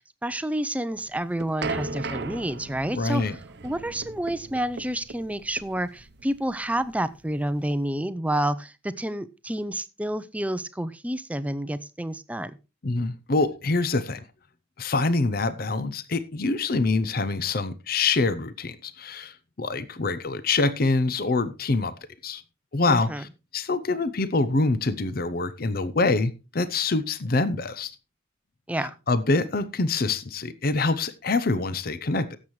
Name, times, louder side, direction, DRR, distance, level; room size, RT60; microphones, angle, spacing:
voice 1, 0.0-3.2 3.6-12.6 22.9-23.2 28.7-28.9, right 1 dB, 5° right, 14 dB, 0.5 m, -29 dB
sound 1, 1.0-7.8, right 3 dB, 60° right, 0.8 m, -37 dB
voice 2, 2.9-3.4 12.8-14.2 14.8-21.9 22.2-22.4 22.7-28.0 29.1-32.4, left 3 dB, 50° left, 15 dB, 0.6 m, -25 dB
16.5 x 7.3 x 3.1 m, 0.28 s
head